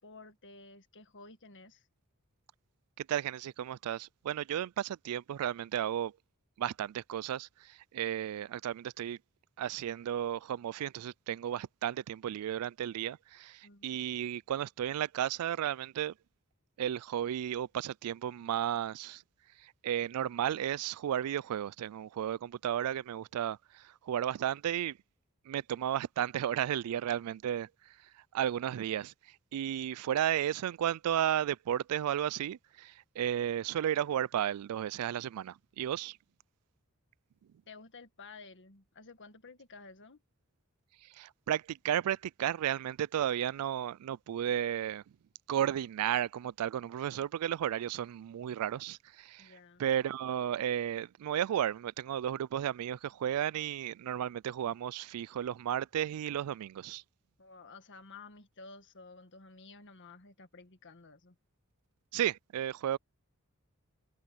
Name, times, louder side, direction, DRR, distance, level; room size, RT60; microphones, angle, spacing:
voice 1, 0.0-1.9 13.6-13.9 27.6-27.7 37.7-40.2 49.4-49.8 57.4-61.4, left 3 dB, 55° left, 1.8 m, -53 dB
voice 2, 3.0-6.1 6.6-9.2 9.6-16.1 16.8-19.2 19.6-25.0 25.5-27.7 28.3-29.1 29.5-36.2 41.1-45.0 45.5-49.5 49.8-57.0 62.1-63.0, right 10 dB, 85° right, 0.3 m, -33 dB
head